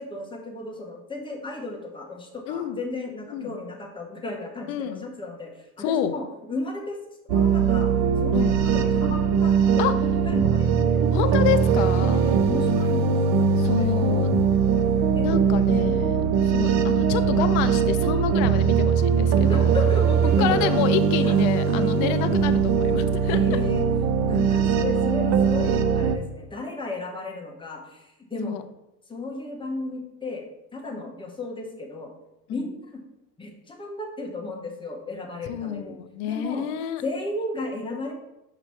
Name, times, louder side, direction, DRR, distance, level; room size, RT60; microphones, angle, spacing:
voice 1, 0.0-5.7 6.0-7.0 7.3-7.9 8.2-10.0 10.2-11.1 12.1-14.3 15.1-15.2 15.8-16.3 19.4-21.3 21.7-22.0 23.3-23.8 24.3-28.5 29.1-32.1 32.5-32.7 33.4-36.0 36.2-36.6 37.0-38.1, left 2 dB, 10° left, 0 dB, 1.0 m, -34 dB
voice 2, 2.5-2.8 3.3-3.5 4.7-5.0 5.8-6.1 8.3-8.6 9.8-9.9 11.1-12.2 13.6-14.3 15.2-19.7 20.4-23.4 28.4-28.6 32.5-32.7 35.5-37.0, left 10 dB, 60° left, 10 dB, 0.7 m, -28 dB
sound 1, 7.3-26.2, right 6 dB, 40° right, 0.5 m, -21 dB
5.9 x 3.0 x 5.6 m, 0.91 s
supercardioid pair, 130°, 44 cm